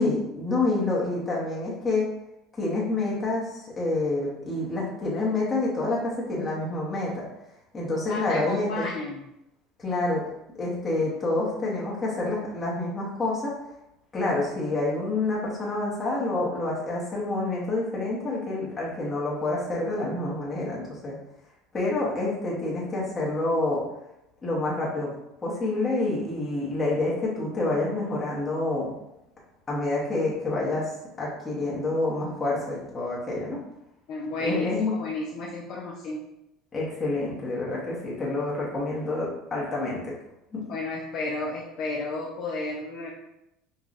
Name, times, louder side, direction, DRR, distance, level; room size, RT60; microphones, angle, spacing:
voice 1, 0.0-2.1 2.6-7.2 7.7-8.9 9.8-10.2 10.6-13.5 14.1-21.2 21.7-23.8 24.4-25.1 25.4-28.9 29.7-30.9 31.2-33.6 34.4-34.9 36.7-40.1 40.5-40.6, left 2 dB, 15° left, -6 dB, 0.9 m, -28 dB
voice 2, 8.1-9.2 34.1-36.2 40.7-43.1, left 2 dB, 40° left, -4 dB, 0.5 m, -32 dB
5.5 x 2.2 x 2.4 m, 0.86 s
cardioid pair, 180°, 0 cm